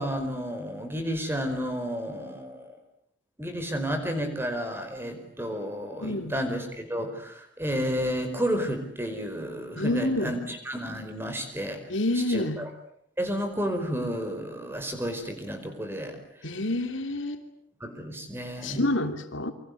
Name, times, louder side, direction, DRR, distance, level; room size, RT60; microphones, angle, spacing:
voice 1, 0.0-2.8 3.4-11.8 12.1-12.7 13.2-16.2 17.8-18.8, equal, 10° right, 7 dB, 4.9 m, -31 dB
voice 2, 6.0-6.3 9.8-10.3 11.9-12.6 16.4-17.4 18.6-19.5, left 2 dB, 70° left, 7 dB, 3.0 m, -28 dB
28.5 x 24.5 x 8.4 m, 0.68 s
head